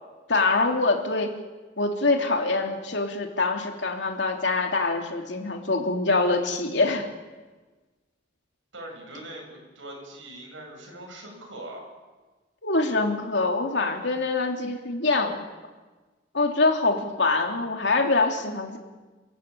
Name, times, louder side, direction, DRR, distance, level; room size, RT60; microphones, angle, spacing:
voice 1, 0.3-1.3 1.8-7.0 12.6-15.4 16.3-18.8, left 3 dB, 65° left, 3 dB, 3.2 m, -24 dB
voice 2, 8.7-11.9, right 1 dB, 80° right, 1 dB, 8.0 m, -41 dB
28.5 x 15.0 x 8.8 m, 1.3 s
head